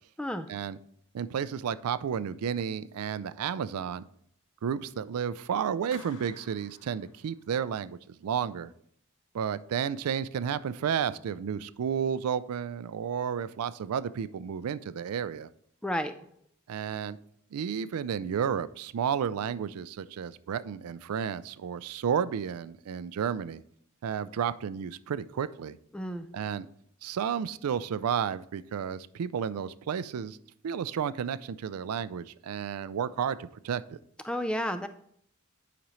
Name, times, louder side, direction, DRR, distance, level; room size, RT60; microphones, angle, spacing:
voice 1, 0.2-0.5 15.8-16.1 25.9-26.3 34.2-34.9, equal, 5° left, 10 dB, 0.3 m, -31 dB
voice 2, 1.1-4.0 4.6-8.7 9.3-15.5 16.7-17.2 17.5-23.6 24.0-25.8 26.3-26.7 27.0-30.4 30.6-33.8, right 7 dB, 85° right, 15 dB, 0.4 m, -32 dB
Clapping, 5.9-7.8, left 4 dB, 60° left, 1.1 m, -53 dB
10.0 x 5.1 x 3.1 m, 0.67 s
head